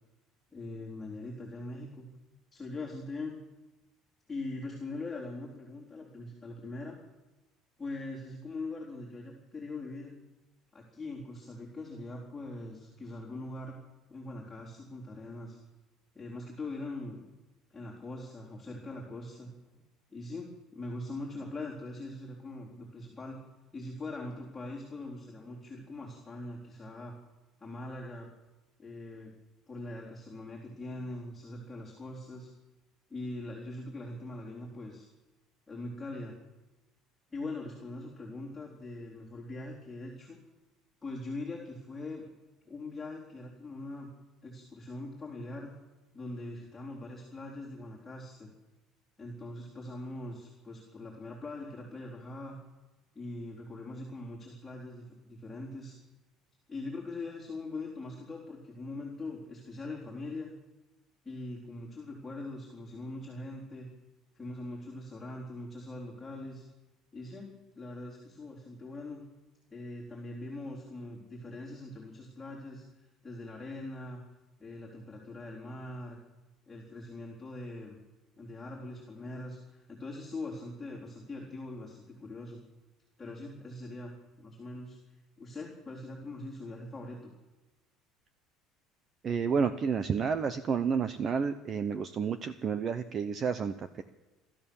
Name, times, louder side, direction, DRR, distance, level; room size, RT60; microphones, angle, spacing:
voice 1, 0.5-2.1 2.5-3.4 4.3-6.9 7.8-10.1 10.7-13.8 14.1-15.6 16.1-17.2 17.7-19.5 20.1-23.4 23.7-27.1 27.6-28.3 28.8-29.3 29.7-32.5 33.1-35.1 35.7-36.4 37.3-40.4 41.0-42.3 42.7-44.1 44.4-45.7 46.1-48.5 49.2-52.6 53.1-55.9 56.7-60.5 61.2-63.9 64.3-66.7 67.1-69.2 69.7-72.8 73.2-74.2 74.6-76.2 76.7-78.0 78.4-82.6 83.2-85.0 85.4-87.3, left 2 dB, 10° left, -6 dB, 4.2 m, -42 dB
voice 2, 89.2-94.0, right 6 dB, 30° right, 11 dB, 0.8 m, -30 dB
27.5 x 13.5 x 7.2 m, 1.1 s
cardioid pair, 165°, 0 cm